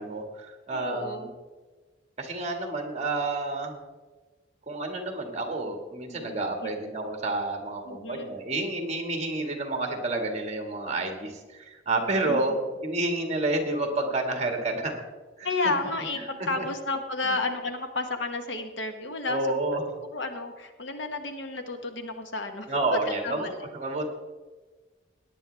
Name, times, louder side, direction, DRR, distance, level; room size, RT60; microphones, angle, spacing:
voice 1, 0.0-1.3 2.2-3.7 4.7-12.6 12.8-15.0 15.4-15.5 16.6-16.7 17.2-17.3 19.3-19.8 22.7-23.5 23.7-24.1, right 2 dB, 35° right, 4 dB, 1.8 m, -29 dB
voice 2, 0.7-1.3 6.0-6.7 7.9-8.3 12.2-12.7 15.4-19.6 20.1-23.6, left 3 dB, 70° left, 6 dB, 1.2 m, -32 dB
17.5 x 9.8 x 3.4 m, 1.3 s
head